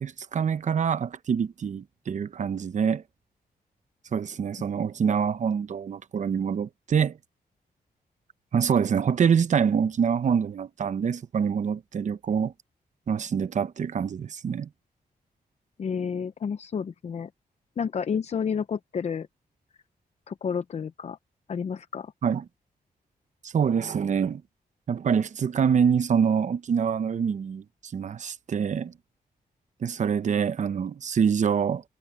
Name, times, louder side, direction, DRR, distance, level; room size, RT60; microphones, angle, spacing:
voice 1, 0.0-3.0 4.1-7.2 8.5-12.5 13.1-14.7 22.2-22.5 23.4-24.4 24.9-28.9 29.8-31.8, right 7 dB, 50° right, 0.8 m, -25 dB
voice 2, 15.8-17.3 17.8-19.3 20.3-21.2 21.5-22.1, left 6 dB, 45° left, 0.6 m, -30 dB
wide cardioid pair, 140°, 16 cm